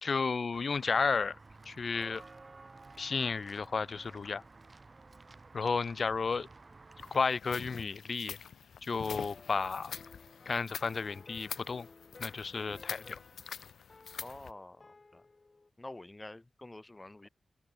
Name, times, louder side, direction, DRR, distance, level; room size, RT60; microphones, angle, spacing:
voice 1, 0.0-1.4 1.7-2.2 3.0-4.4 5.5-6.5 7.1-8.4 8.8-9.9 10.5-11.9 12.2-13.2, left 5 dB, 60° left, 0.4 m, -32 dB
Walk footsteps / Bell, 0.5-7.2, right 3 dB, 40° right, 2.8 m, -54 dB
sound 1, 7.0-14.5, left 7 dB, 85° left, 1.9 m, -45 dB
sound 2, 9.2-15.7, left 3 dB, 40° left, 2.3 m, -57 dB
voice 2, 14.2-15.2 15.8-17.3, left 2 dB, 25° left, 2.5 m, -48 dB
cardioid pair, 50°, 0 cm